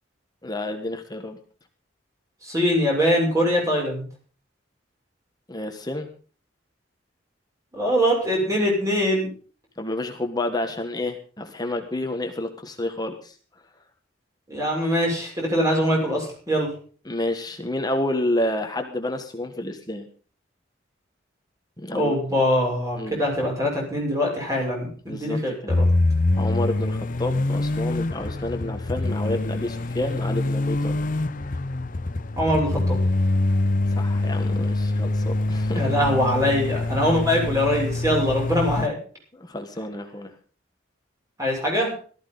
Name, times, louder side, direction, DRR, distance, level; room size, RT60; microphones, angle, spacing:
voice 1, 0.4-1.4 5.5-6.1 9.8-13.3 17.0-20.1 21.8-22.2 23.0-23.2 25.1-25.8 26.3-31.0 33.9-35.9 37.0-37.1 39.3-40.3, left 1 dB, 20° left, 5 dB, 1.4 m, -29 dB
voice 2, 2.4-4.0 7.7-9.3 14.5-16.7 21.9-25.8 32.4-33.0 35.7-39.0 41.4-41.9, equal, 15° right, -2 dB, 6.7 m, -23 dB
sound 1, 25.7-38.9, left 2 dB, 45° left, 0.7 m, -24 dB
18.0 x 14.0 x 4.0 m, 0.40 s
head